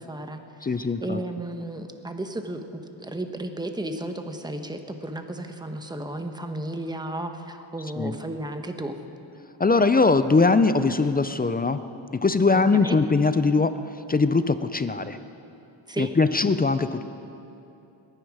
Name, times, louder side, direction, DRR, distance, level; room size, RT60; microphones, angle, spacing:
voice 1, 0.0-9.0 12.5-13.0 15.9-16.1, right 1 dB, 10° right, 6 dB, 1.1 m, -34 dB
voice 2, 0.6-1.2 8.0-8.1 9.6-11.8 12.1-13.7 14.1-15.2 16.0-17.0, left 4 dB, 20° left, 12 dB, 0.4 m, -21 dB
21.5 x 10.0 x 4.9 m, 2.8 s
cardioid pair, 85°, 49 cm